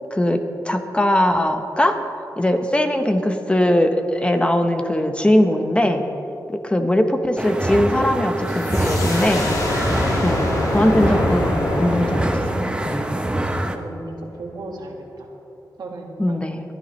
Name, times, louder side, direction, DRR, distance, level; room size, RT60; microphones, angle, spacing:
voice 1, 0.1-2.0 2.4-6.1 6.5-9.5 10.2-13.0 16.2-16.6, left 1 dB, 15° left, 6 dB, 1.0 m, -20 dB
sound 1, 7.4-13.7, right 1 dB, 15° right, 0.9 m, -25 dB
sound 2, 8.5-14.0, left 1 dB, 50° left, 2.2 m, -25 dB
voice 2, 13.1-15.0 15.8-16.4, right 2 dB, 80° right, 1 dB, 1.7 m, -36 dB
21.0 x 12.5 x 3.2 m, 2.9 s
wide cardioid pair, 90°, 7 cm